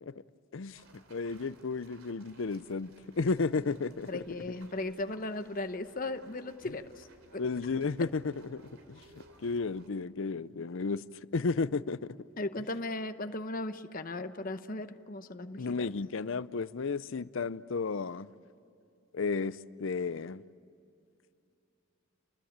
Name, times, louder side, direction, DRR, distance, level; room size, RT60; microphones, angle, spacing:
sound 1, 0.7-9.9, right 2 dB, 70° right, 3.0 m, -60 dB
voice 1, 1.1-4.2 7.4-8.2 8.5-8.6 8.9-9.0 9.4-11.0 11.3-12.1 15.6-18.3 19.1-20.4, left 4 dB, 60° left, 0.6 m, -33 dB
voice 2, 4.1-7.4 12.4-15.9, left 2 dB, 40° left, 0.9 m, -37 dB
29.5 x 20.5 x 8.7 m
head